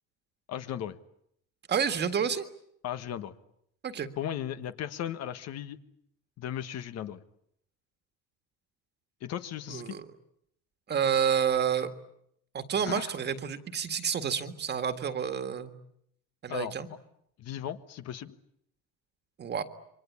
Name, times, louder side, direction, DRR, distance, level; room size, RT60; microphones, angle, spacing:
voice 1, 0.5-1.0 2.8-3.3 4.2-5.8 6.4-7.2 9.2-10.0 12.9-13.1 16.5-16.8 17.4-18.3, left 10 dB, 55° left, 10 dB, 1.5 m, -36 dB
voice 2, 1.7-2.4 3.8-4.1 9.7-10.1 10.9-11.9 12.5-15.7 16.4-16.9 19.4-19.6, right 7 dB, 35° right, 9 dB, 1.9 m, -29 dB
28.0 x 24.0 x 8.6 m, 0.74 s
cardioid pair, 145°, 31 cm